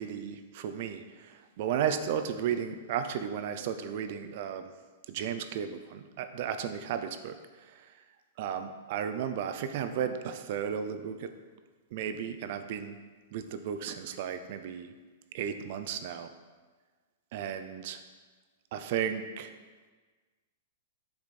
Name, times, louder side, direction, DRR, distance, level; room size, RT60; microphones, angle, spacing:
voice 1, 0.0-4.7 5.1-7.9 8.4-11.3 11.9-13.0 13.3-14.9 15.3-16.3 17.3-18.0 18.7-19.5, right 8 dB, 45° right, 9 dB, 0.5 m, -34 dB
8.0 x 6.9 x 4.2 m, 1.4 s
supercardioid pair, 165°, 0 cm